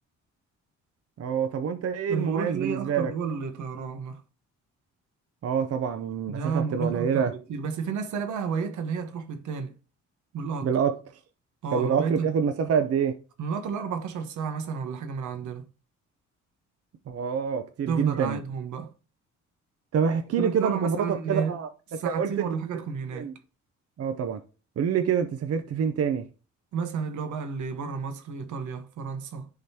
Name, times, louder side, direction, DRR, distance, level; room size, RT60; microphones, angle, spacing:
voice 1, 1.2-3.1 5.4-7.3 10.6-11.0 11.7-13.2 17.1-18.4 19.9-21.7 22.0-22.5 23.1-23.3 24.0-24.4 24.8-26.2, right 7 dB, 55° right, 0.7 m, -26 dB
voice 2, 2.1-4.2 6.3-9.8 10.3-10.7 11.6-12.3 13.4-15.7 17.9-18.9 20.4-21.6 21.9-23.3 26.7-29.5, right 5 dB, 75° right, 1.2 m, -32 dB
10.5 x 3.9 x 2.8 m
cardioid pair, 90°, 30 cm